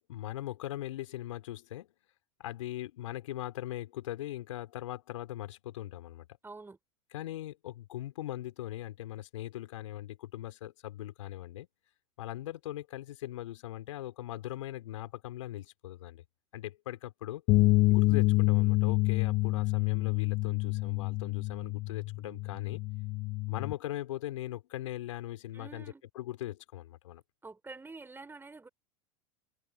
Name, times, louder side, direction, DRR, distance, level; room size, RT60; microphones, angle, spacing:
voice 1, 0.0-1.9 2.4-6.3 7.1-11.7 12.2-16.2 16.5-17.4 17.9-22.8 23.5-25.9 26.1-27.2, left 14 dB, 70° left, 4.4 m, -40 dB
voice 2, 6.4-6.8 25.5-26.0 27.4-28.7, right 3 dB, 10° right, 4.8 m, -47 dB
sound 1, 17.5-23.7, left 21 dB, 45° left, 1.3 m, -27 dB
hypercardioid pair, 90°, 17 cm